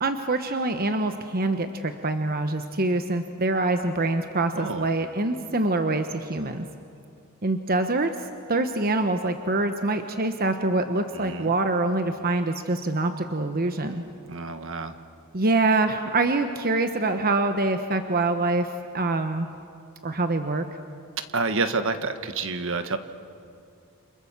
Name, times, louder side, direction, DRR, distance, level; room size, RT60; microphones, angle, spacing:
voice 1, 0.0-6.7 7.4-8.1 8.5-14.0 15.3-19.5 20.0-20.7, right 2 dB, 40° right, 7 dB, 1.1 m, -25 dB
voice 2, 4.5-4.9 11.1-11.5 14.3-14.9 21.3-23.0, right 3 dB, 60° right, 9 dB, 1.4 m, -28 dB
29.5 x 27.5 x 7.4 m, 2.4 s
head